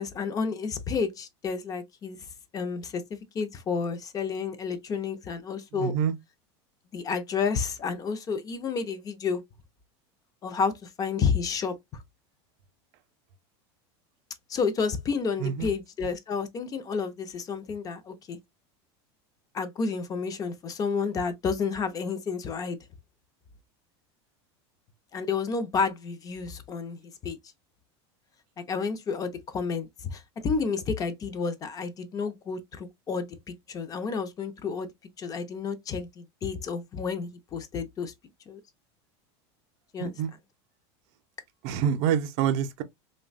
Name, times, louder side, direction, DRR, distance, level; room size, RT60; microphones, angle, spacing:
voice 1, 0.0-2.2 2.5-5.9 6.9-9.4 10.4-11.7 14.5-18.4 19.5-22.8 25.1-27.4 28.7-34.9 35.2-38.1 38.5-38.6 39.9-40.1, left 5 dB, 25° left, 0.5 m, -30 dB
voice 2, 5.7-6.1 15.4-15.7 40.0-40.3 41.6-42.8, right 8 dB, 55° right, 0.5 m, -27 dB
3.2 x 2.1 x 2.4 m
supercardioid pair, 135°, 14 cm